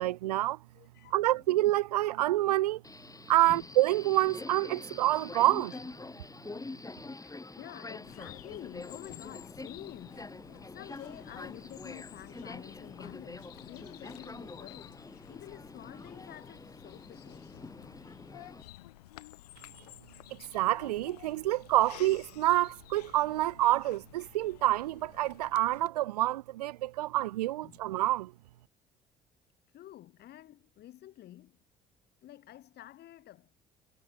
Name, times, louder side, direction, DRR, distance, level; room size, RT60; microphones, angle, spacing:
voice 1, 0.0-0.6 1.1-2.8 3.3-5.7 20.3-28.3, right 15 dB, 75° right, 0.5 m, -27 dB
voice 2, 0.7-1.4 3.5-3.6 5.7-5.8 7.2-10.3 10.7-17.5 27.6-27.8 29.7-31.6 32.2-33.5, left 13 dB, 55° left, 3.1 m, -49 dB
Subway metro underground, 2.8-18.6, left 3 dB, 15° left, 4.9 m, -46 dB
Bird vocalization bird call bird song, 8.0-25.9, left 16 dB, 75° left, 7.4 m, -53 dB
figure-of-eight pair, 50°, 20 cm